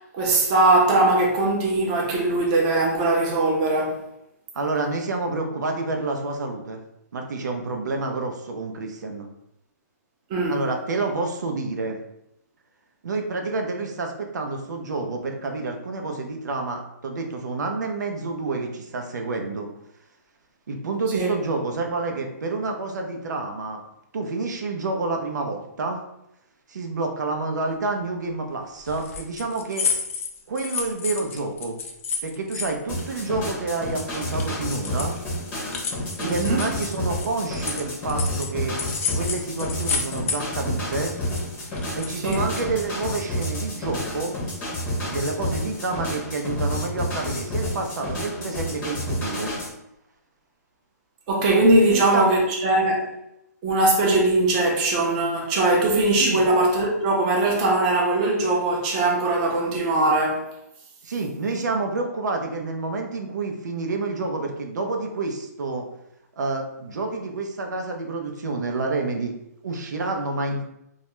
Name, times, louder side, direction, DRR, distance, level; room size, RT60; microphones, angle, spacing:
voice 1, 0.1-4.0 10.3-10.6 21.1-21.3 36.2-36.7 42.2-42.5 51.3-53.1 53.6-60.4, right 2 dB, 25° right, -1 dB, 0.5 m, -20 dB
voice 2, 4.5-6.8 7.1-9.3 10.5-12.0 13.0-19.7 20.7-23.8 24.1-26.0 26.7-29.9 30.5-31.8 32.2-35.1 36.2-38.8 39.1-41.1 42.0-44.4 45.0-49.5 51.8-52.3 56.2-56.4 61.0-65.9 66.4-69.3 69.6-70.6, right 3 dB, 85° right, 3 dB, 0.5 m, -28 dB
sound 1, 28.9-33.6 33.9-38.5 38.8-40.7 41.0-42.9, left 5 dB, 50° left, 0.4 m, -31 dB
sound 2, 32.9-49.7, left 1 dB, 15° left, 0.6 m, -30 dB
2.3 x 2.1 x 2.9 m, 0.81 s
hypercardioid pair, 160°, 9 cm